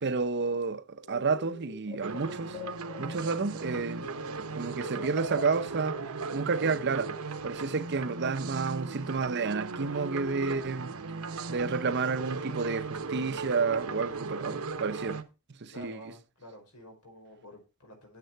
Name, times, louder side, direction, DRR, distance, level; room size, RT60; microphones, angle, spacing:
voice 1, 0.0-2.6 3.0-4.1 4.5-6.0 6.3-10.9 11.5-15.2 15.6-16.0, right 4 dB, 50° right, 0.7 m, -30 dB
sound 1, 1.0-4.3 4.5-7.6, left 1 dB, 45° left, 2.6 m, -45 dB
sound 2, 2.0-15.2, right 4 dB, 75° right, 1.0 m, -37 dB
voice 2, 15.7-18.2, left 1 dB, 90° left, 5.0 m, -49 dB
9.3 x 7.5 x 4.6 m
head